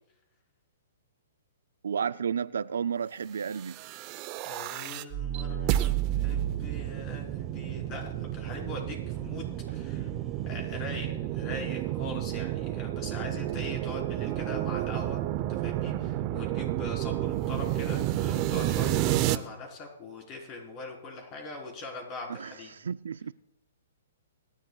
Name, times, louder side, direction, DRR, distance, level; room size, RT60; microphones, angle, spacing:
voice 1, 1.8-3.8 22.3-23.3, right 7 dB, 80° right, 0.4 m, -32 dB
sound 1, 3.6-19.4, right 13 dB, 35° right, 0.6 m, -31 dB
voice 2, 4.4-10.1 10.5-15.2 15.5-22.7, left 2 dB, 30° left, 3.8 m, -42 dB
sound 2, 5.6-11.1, right 2 dB, 5° right, 1.9 m, -50 dB
27.5 x 11.0 x 2.3 m
hypercardioid pair, 140°, 0 cm